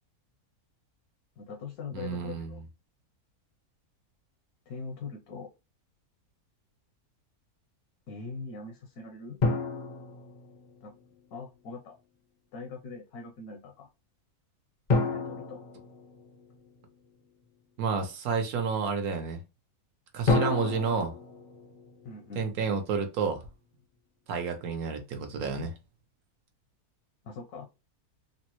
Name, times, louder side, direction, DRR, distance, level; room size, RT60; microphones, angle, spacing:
voice 1, 1.4-2.6 4.7-5.5 8.1-9.4 10.8-11.0 11.3-12.0 12.5-13.9 14.9-15.6 22.0-22.5 27.2-27.7, left 4 dB, 80° left, 1.2 m, -42 dB
voice 2, 1.9-2.6 17.8-19.4 20.1-21.1 22.4-23.4 24.3-25.7, right 5 dB, 75° right, 1.2 m, -30 dB
sound 1, 9.4-11.0 14.9-16.8 20.3-22.5, left 3 dB, 55° left, 0.5 m, -30 dB
3.7 x 2.1 x 2.9 m
omnidirectional pair, 1.6 m